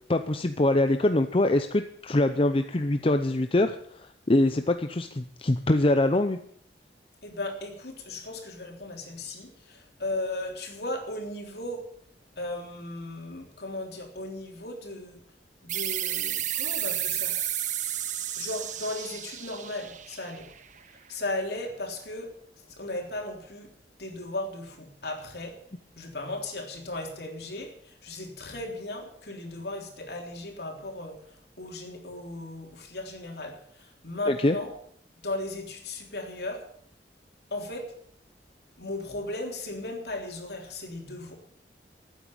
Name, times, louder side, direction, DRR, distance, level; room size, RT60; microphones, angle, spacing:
voice 1, 0.1-6.4 34.3-34.6, left 1 dB, 30° left, 8 dB, 0.7 m, -24 dB
voice 2, 7.2-11.9 12.4-15.2 15.6-17.4 18.4-20.5 21.1-22.3 22.7-23.7 24.0-25.6 26.0-31.2 31.6-34.7 35.2-36.6 37.5-37.9 38.8-41.3, left 2 dB, 65° left, 2 dB, 3.6 m, -36 dB
sound 1, 15.7-21.0, right 11 dB, 45° right, 1.1 m, -32 dB
13.0 x 9.3 x 8.7 m, 0.64 s
head